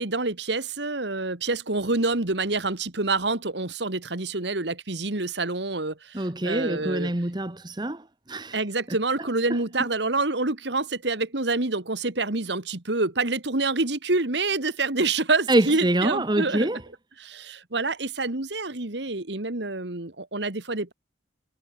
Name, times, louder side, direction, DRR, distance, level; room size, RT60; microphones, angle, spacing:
voice 1, 0.0-7.1 8.5-16.7 17.2-20.9, right 3 dB, 65° right, 2.0 m, -27 dB
voice 2, 6.1-8.6 15.5-16.8, right 1 dB, 25° right, 1.2 m, -25 dB
head